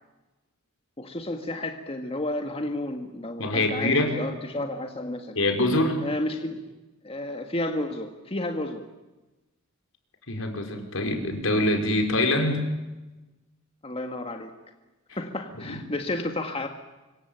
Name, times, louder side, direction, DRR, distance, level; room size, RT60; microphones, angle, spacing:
voice 1, 1.0-5.4 6.0-6.7 7.0-8.8 13.8-14.5 15.2-16.7, left 1 dB, 30° left, 4 dB, 1.9 m, -31 dB
voice 2, 3.4-4.1 5.3-6.0 10.3-12.6 15.1-15.2 15.6-15.8, left 1 dB, 75° left, 4 dB, 5.4 m, -24 dB
26.0 x 24.0 x 9.0 m, 1.1 s
head